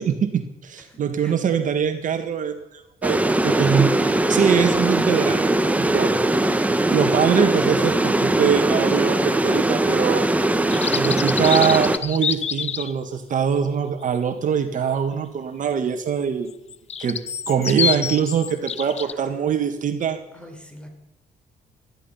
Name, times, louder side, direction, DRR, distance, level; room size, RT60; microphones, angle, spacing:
voice 1, 0.0-6.1 6.9-10.3 11.0-16.5 17.0-17.2 17.5-20.2, right 7 dB, 55° right, 7 dB, 1.7 m, -23 dB
voice 2, 0.9-1.4 19.1-19.2 20.3-20.9, equal, 5° left, 4 dB, 4.9 m, -43 dB
sound 1, 3.0-12.0, right 2 dB, 10° right, 1.3 m, -20 dB
sound 2, 10.5-12.9 16.5-19.1, left 7 dB, 45° left, 0.8 m, -27 dB
18.5 x 13.5 x 5.7 m, 0.91 s
cardioid pair, 100°, 15 cm